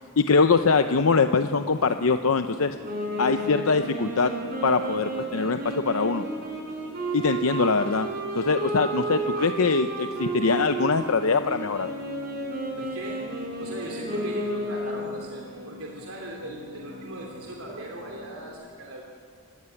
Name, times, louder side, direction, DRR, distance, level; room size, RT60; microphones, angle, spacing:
voice 1, 0.2-2.7 3.2-4.3 4.6-6.2 7.1-8.1 8.3-11.9, left 4 dB, 75° left, 8 dB, 0.7 m, -23 dB
sound 1, 0.9-18.5, equal, 70° right, 6.0 m, -44 dB
Wind instrument woodwind instrument, 2.8-15.3, right 2 dB, 45° right, 6.7 m, -32 dB
voice 2, 12.8-13.2 13.6-19.0, right 1 dB, 85° right, 0 dB, 3.1 m, -38 dB
26.0 x 15.5 x 9.8 m, 2.1 s
head